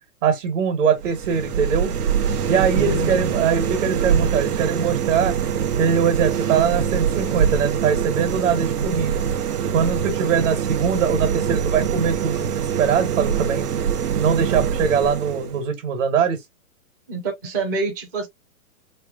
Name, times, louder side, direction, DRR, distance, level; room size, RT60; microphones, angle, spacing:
voice 1, 0.2-1.9 2.5-5.4 5.8-9.2 9.7-13.7 14.1-16.4, right 7 dB, 55° right, 1.2 m, -22 dB
sound 1, 1.0-15.6, right 7 dB, 90° right, 0.9 m, -24 dB
voice 2, 2.7-3.5 17.1-18.3, right 3 dB, 15° right, 0.4 m, -27 dB
3.4 x 3.1 x 2.3 m
hypercardioid pair, 145°, 44 cm